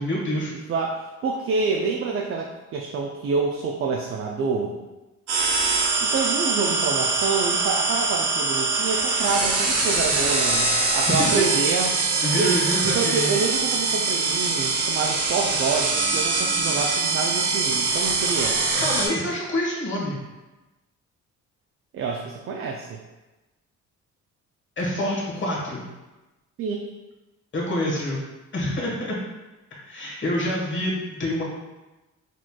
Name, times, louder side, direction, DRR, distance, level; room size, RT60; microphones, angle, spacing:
voice 1, 0.0-0.5 11.1-11.3 12.2-13.3 18.8-20.2 24.8-25.9 27.5-28.2 28.5-29.2 29.7-31.4, left 1 dB, 40° left, -4 dB, 1.3 m, -27 dB
voice 2, 0.7-4.7 6.0-12.0 12.4-12.6 12.8-18.6 21.9-23.0 26.6-26.9, right 4 dB, 45° right, 0 dB, 0.4 m, -27 dB
sound 1, 5.3-19.1, right 3 dB, 85° right, 0.8 m, -23 dB
4.2 x 3.0 x 2.2 m, 1.1 s
cardioid pair, 90°, 30 cm